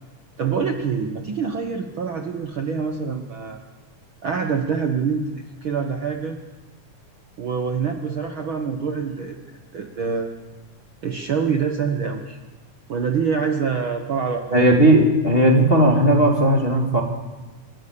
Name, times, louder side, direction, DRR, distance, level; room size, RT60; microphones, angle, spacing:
voice 1, 0.4-3.6 4.2-6.4 7.4-10.3 11.0-12.4 12.9-14.7, right 6 dB, 55° right, 4 dB, 1.6 m, -25 dB
voice 2, 14.5-17.0, right 1 dB, 20° left, 0 dB, 1.9 m, -16 dB
27.5 x 14.0 x 8.6 m, 1.2 s
omnidirectional pair, 3.5 m